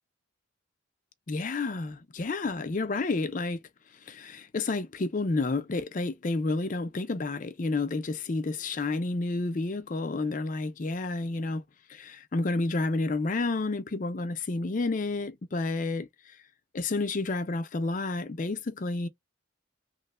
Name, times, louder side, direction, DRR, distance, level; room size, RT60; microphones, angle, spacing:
voice 1, 1.3-3.6 4.1-11.6 11.9-16.1 16.7-19.1, left 3 dB, 40° left, 0.4 m, -30 dB
3.0 x 2.1 x 2.9 m
head